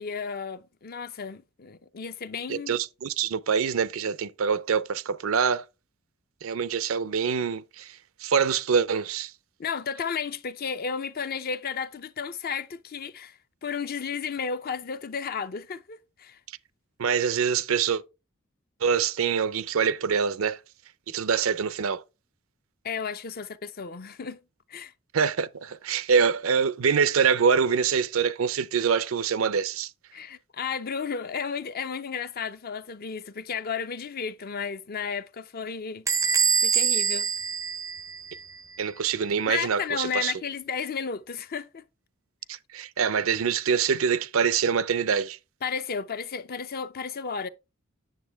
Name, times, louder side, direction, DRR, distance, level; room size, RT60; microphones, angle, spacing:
voice 1, 0.0-2.8 9.6-16.4 22.8-24.4 24.7-24.9 30.1-36.1 36.6-37.3 39.5-41.8 45.6-47.5, left 6 dB, 45° left, 0.6 m, -33 dB
voice 2, 2.5-5.6 6.4-8.0 8.2-9.3 17.0-18.0 18.8-20.6 21.1-22.0 25.1-29.9 38.8-40.3 42.5-45.4, right 6 dB, 70° right, 0.5 m, -25 dB
Bell / Door, 36.1-38.6, right 6 dB, 15° right, 0.5 m, -25 dB
9.0 x 6.9 x 3.4 m
head